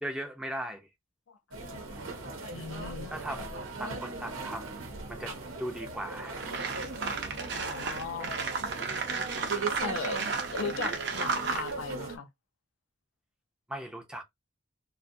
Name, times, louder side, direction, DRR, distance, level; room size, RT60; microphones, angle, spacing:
voice 1, 0.0-0.9 2.3-2.5 3.1-4.8 5.1-6.7 7.9-8.0 13.7-14.2, right 1 dB, 5° right, 0.5 m, -39 dB
sound 1, 1.5-12.2, right 3 dB, 90° right, 0.8 m, -39 dB
voice 2, 2.5-3.1 7.5-8.3 9.8-12.3, left 4 dB, 75° left, 0.5 m, -38 dB
sound 2, 5.9-6.0 6.4-11.7, right 4 dB, 55° right, 0.7 m, -33 dB
2.5 x 2.2 x 2.6 m
head